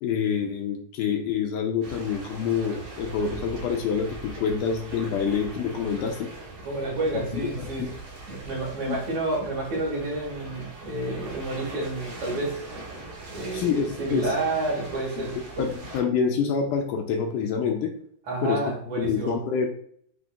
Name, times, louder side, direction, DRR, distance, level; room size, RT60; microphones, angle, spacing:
voice 1, 0.0-6.3 7.3-7.9 8.9-9.0 13.5-14.3 15.2-17.9 18.4-18.6 18.9-19.7, left 6 dB, 80° left, 3 dB, 2.0 m, -27 dB
sound 1, 1.8-16.0, right 2 dB, 90° right, 3.5 m, -41 dB
voice 2, 6.6-7.9 8.3-12.6 13.3-15.7 18.3-19.4, right 2 dB, 60° right, -3 dB, 2.5 m, -30 dB
7.7 x 3.0 x 2.3 m, 0.64 s
omnidirectional pair, 3.9 m